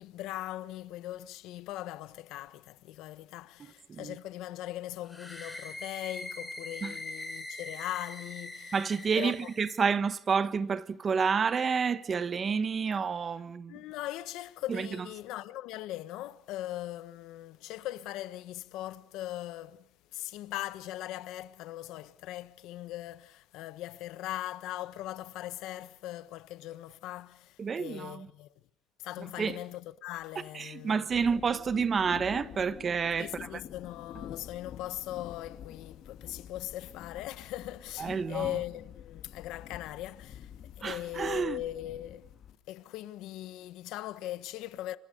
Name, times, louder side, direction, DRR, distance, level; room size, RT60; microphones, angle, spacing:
voice 1, 0.0-8.7 9.1-9.5 13.7-19.9 20.1-28.5 29.0-31.3 33.2-42.3 42.7-45.0, left 14 dB, 75° left, 1.3 m, -40 dB
sound 1, 5.0-9.9, left 2 dB, 10° left, 6.6 m, -42 dB
voice 2, 8.7-13.8 14.7-14.9 27.6-28.3 29.4-29.6 30.5-33.6 38.0-38.5 40.8-41.6, right 6 dB, 30° right, 1.3 m, -29 dB
sound 2, 31.1-42.5, left 9 dB, 55° left, 2.0 m, -47 dB
29.5 x 26.0 x 5.4 m
cardioid pair, 125°, 0 cm